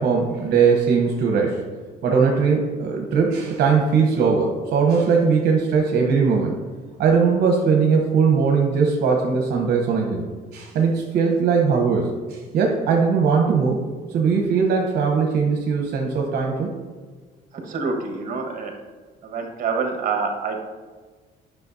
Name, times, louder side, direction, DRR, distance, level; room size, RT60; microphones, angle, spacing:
voice 1, 0.0-1.6 2.0-6.5 7.0-10.2 10.5-13.8 14.1-16.7, right 5 dB, 70° right, 0 dB, 1.0 m, -20 dB
voice 2, 17.6-18.7 19.2-20.6, right 4 dB, 50° right, 3 dB, 1.5 m, -26 dB
9.7 x 6.0 x 2.7 m, 1.4 s
cardioid pair, 110°, 17 cm